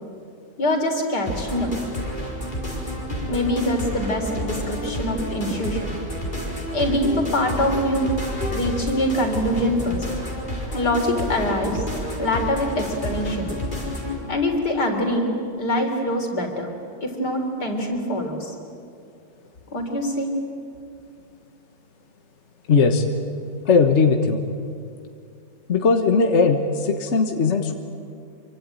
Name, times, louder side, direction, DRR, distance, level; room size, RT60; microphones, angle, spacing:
voice 1, 0.6-1.7 3.1-5.9 6.7-8.1 8.5-10.1 10.7-11.8 12.2-13.5 14.3-15.3 15.6-16.7 17.0-18.5 19.7-20.4, left 1 dB, 70° left, 3 dB, 4.3 m, -24 dB
sound 1, 1.3-14.2, equal, 25° left, 5.0 m, -30 dB
voice 2, 22.7-23.0 23.6-24.4 25.7-27.7, left 4 dB, 45° left, 4 dB, 1.6 m, -19 dB
26.0 x 24.5 x 9.1 m, 2.5 s
omnidirectional pair, 1.9 m